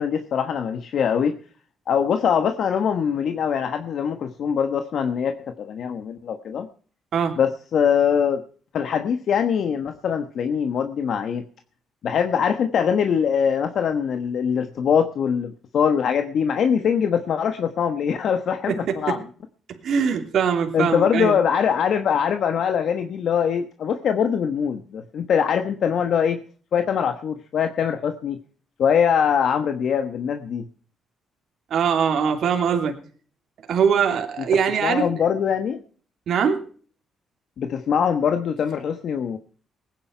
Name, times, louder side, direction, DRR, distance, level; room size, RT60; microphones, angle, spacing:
voice 1, 0.0-1.4 1.9-6.7 7.4-8.4 8.7-11.5 12.0-19.2 20.7-26.4 26.7-28.4 28.8-30.7 34.8-35.8 37.6-39.4, left 7 dB, 65° left, 8 dB, 1.2 m, -22 dB
voice 2, 18.7-19.2 19.7-21.4 31.7-33.0 33.7-35.2 36.3-36.7, right 7 dB, 65° right, 4 dB, 2.8 m, -22 dB
19.5 x 10.0 x 4.6 m, 0.44 s
cardioid pair, 90°, 0 cm